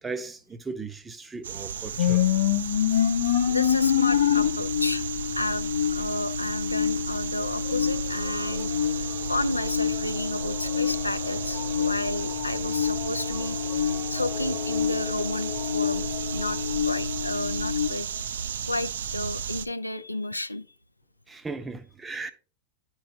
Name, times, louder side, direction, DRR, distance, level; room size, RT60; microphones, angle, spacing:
voice 1, 0.0-2.2 21.3-22.3, right 3 dB, 15° right, 0.6 m, -36 dB
sound 1, 1.4-19.7, right 7 dB, 65° right, 0.4 m, -34 dB
sound 2, 2.0-17.9, left 9 dB, 65° left, 0.7 m, -27 dB
voice 2, 3.5-5.1 5.3-18.1 18.6-20.7, left 2 dB, 85° left, 0.3 m, -32 dB
sound 3, 7.4-19.2, left 9 dB, 40° left, 1.1 m, -43 dB
10.0 x 4.7 x 2.7 m
figure-of-eight pair, 90°, 0 cm